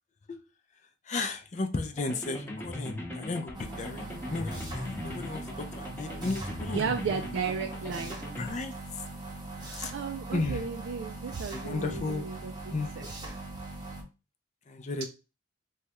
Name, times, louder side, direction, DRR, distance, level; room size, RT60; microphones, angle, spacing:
voice 1, 1.1-6.9 8.4-9.0 9.8-9.9 10.3-10.6 11.5-12.3 12.7-13.1 14.7-15.1, left 3 dB, 40° left, 6 dB, 0.5 m, -34 dB
sound 1, 1.9-8.5, left 1 dB, 10° left, 0.7 m, -39 dB
sound 2, 3.5-14.0, right 2 dB, 20° right, 0.8 m, -41 dB
voice 2, 6.7-8.2 9.6-13.3, right 6 dB, 80° right, 4 dB, 0.3 m, -34 dB
3.1 x 2.3 x 2.9 m, 0.30 s
head